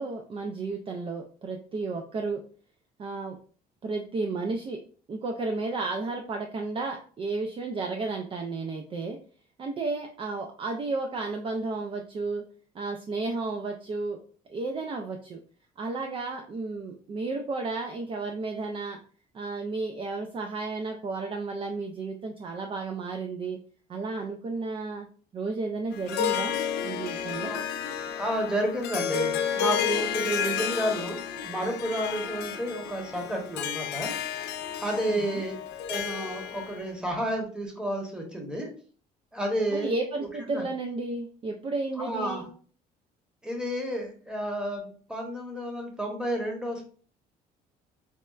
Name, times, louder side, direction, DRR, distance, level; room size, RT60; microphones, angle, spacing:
voice 1, 0.0-2.4 3.0-3.4 3.8-4.8 5.1-9.2 9.6-12.4 12.7-14.2 14.5-15.4 15.8-19.0 19.3-23.6 23.9-25.1 25.3-26.6 26.8-27.5 35.1-35.4 39.7-42.5, right 3 dB, 30° right, 3 dB, 0.4 m, -32 dB
Harp, 25.9-36.8, left 9 dB, 75° left, 0.4 m, -31 dB
voice 2, 28.1-31.2 31.4-34.1 34.8-35.6 35.9-38.7 39.3-39.9 40.4-40.6 42.0-42.4 43.4-46.8, right 1 dB, 5° right, 1 dB, 1.0 m, -31 dB
4.1 x 2.1 x 2.3 m, 0.43 s
cardioid pair, 110°, 17 cm